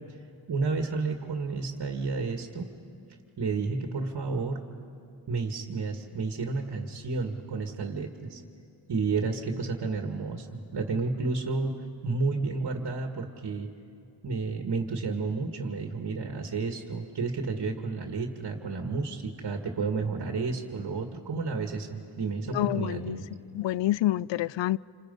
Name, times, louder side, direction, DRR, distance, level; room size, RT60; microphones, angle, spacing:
voice 1, 0.5-2.7 3.4-4.6 5.3-8.4 8.9-13.7 14.2-23.2, right 4 dB, 60° right, 4 dB, 1.9 m, -31 dB
voice 2, 22.5-23.2 23.5-24.8, left 15 dB, 85° left, 21 dB, 0.5 m, -27 dB
28.0 x 26.5 x 5.4 m, 2.6 s
cardioid pair, 90°, 43 cm